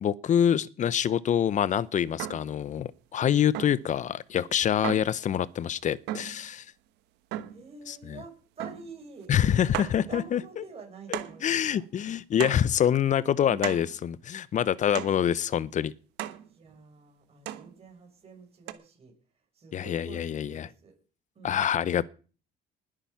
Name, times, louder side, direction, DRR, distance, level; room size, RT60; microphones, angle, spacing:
voice 1, 0.0-6.7 7.9-8.2 9.3-10.4 11.4-15.9 19.7-20.7 21.4-22.1, left 9 dB, 45° left, 0.8 m, -26 dB
sound 1, 2.2-2.6 3.5-3.9 4.8-5.2 6.1-6.4 7.3-7.7 8.6-8.9 9.2-9.3 9.7-10.0 11.1-11.5 12.4-12.7 13.6-14.0 14.9-15.2 16.2-16.5 17.5-17.7 18.7-18.8, right 13 dB, 90° right, 1.3 m, -35 dB
voice 2, 7.5-9.3 10.0-11.8 13.5-13.6 16.4-21.0 21.3-21.6, right 4 dB, 35° right, 6.6 m, -47 dB
20.0 x 9.0 x 5.8 m
cardioid pair, 110°, 17 cm